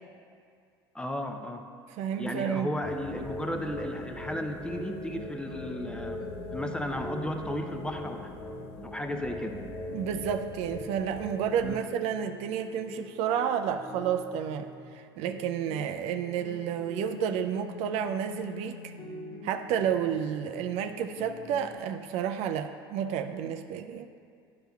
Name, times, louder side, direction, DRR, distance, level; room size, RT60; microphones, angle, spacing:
voice 1, 0.9-1.6 2.2-6.3 6.5-8.3 8.8-9.6 11.6-11.8, left 1 dB, 5° left, 5 dB, 0.6 m, -34 dB
voice 2, 2.0-2.7 9.9-18.9 19.4-24.1, right 8 dB, 55° right, 6 dB, 0.4 m, -31 dB
sound 1, 2.8-11.8, left 1 dB, 45° left, 0.7 m, -40 dB
sound 2, 3.1-14.9 15.3-21.8, left 2 dB, 75° left, 1.6 m, -45 dB
10.5 x 5.7 x 2.3 m, 2.2 s
hypercardioid pair, 80°, 13 cm